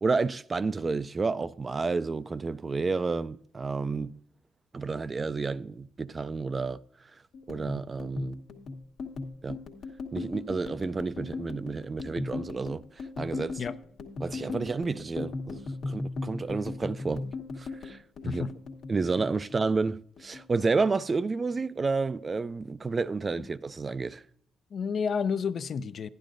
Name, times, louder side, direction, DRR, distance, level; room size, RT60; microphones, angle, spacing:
voice 1, 0.0-4.2 4.7-6.8 7.5-8.4 9.4-9.6 10.1-12.8 13.2-13.6 14.2-17.2 17.6-18.0 18.2-18.4 18.9-24.2, right 4 dB, 30° right, 0.3 m, -30 dB
sound 1, 7.3-19.9 20.2-21.2 21.5-21.9 22.2-22.8, left 3 dB, 70° left, 1.2 m, -38 dB
voice 2, 24.7-26.1, left 6 dB, 55° left, 0.4 m, -30 dB
11.5 x 10.5 x 2.5 m
cardioid pair, 90°, 0 cm